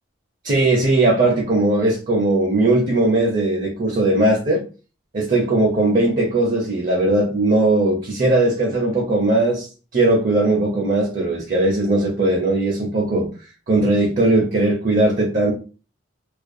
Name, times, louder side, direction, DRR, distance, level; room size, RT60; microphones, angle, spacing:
voice 1, 0.4-4.6 5.1-13.3 13.7-15.5, right 2 dB, 40° right, 0.5 m, -19 dB
2.3 x 2.1 x 2.5 m
head